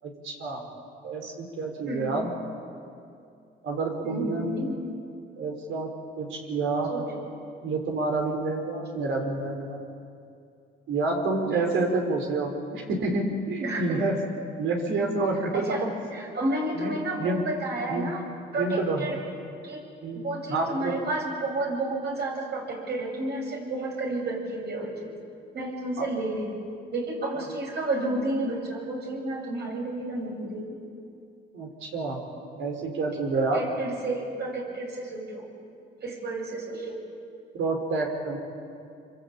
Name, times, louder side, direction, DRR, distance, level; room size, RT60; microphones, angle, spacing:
voice 1, 0.0-0.6 1.0-2.3 3.6-4.5 5.4-5.9 6.2-6.9 7.6-9.8 10.9-14.2 14.6-15.9 16.7-17.4 17.9-18.1 18.6-19.0 20.0-20.9 26.0-26.1 31.5-32.2 32.6-33.6 37.5-38.4, right 3 dB, 80° right, 2 dB, 5.1 m, -28 dB
voice 2, 4.0-4.9 6.9-7.0 11.5-11.7 13.6-14.0 15.5-15.8 16.1-18.2 18.5-19.2 19.6-19.8 20.1-25.1 25.5-26.5 26.9-30.7 33.3-35.5 36.0-37.0, right 2 dB, 55° right, 0 dB, 8.0 m, -31 dB
26.0 x 24.5 x 8.9 m, 2.5 s
cardioid pair, 90°, 20 cm